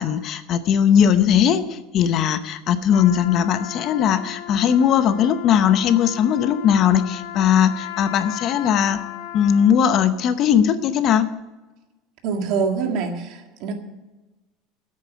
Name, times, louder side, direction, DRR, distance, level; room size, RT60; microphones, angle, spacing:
voice 1, 0.0-9.0 9.3-11.3, left 8 dB, 40° left, 11 dB, 0.7 m, -19 dB
Trumpet, 2.9-9.9, left 13 dB, 85° left, 1.7 m, -36 dB
voice 2, 12.2-13.7, right 5 dB, 55° right, 4 dB, 1.8 m, -25 dB
9.6 x 8.5 x 9.4 m, 1.1 s
cardioid pair, 155°, 0 cm